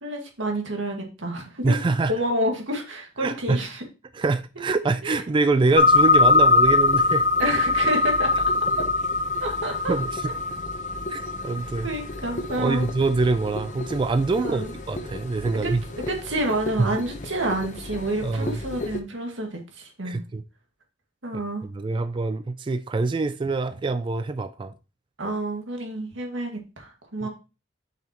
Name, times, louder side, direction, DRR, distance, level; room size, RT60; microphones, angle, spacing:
voice 1, 0.0-1.7 2.1-3.8 5.0-5.2 7.4-8.3 9.4-9.9 11.8-12.8 14.4-14.7 15.6-15.7 16.1-20.2 21.2-21.6 25.2-27.3, right 1 dB, 85° right, 1.9 m, -29 dB
voice 2, 1.6-2.1 3.2-3.6 4.1-7.3 9.9-10.3 11.1-11.9 12.6-15.8 16.8-16.9 18.2-18.6 20.0-20.4 21.6-24.7 27.2-27.3, right 3 dB, 25° right, 0.3 m, -25 dB
sound 1, 5.8-19.0, left 3 dB, 40° left, 0.9 m, -24 dB
7.3 x 5.7 x 3.0 m
head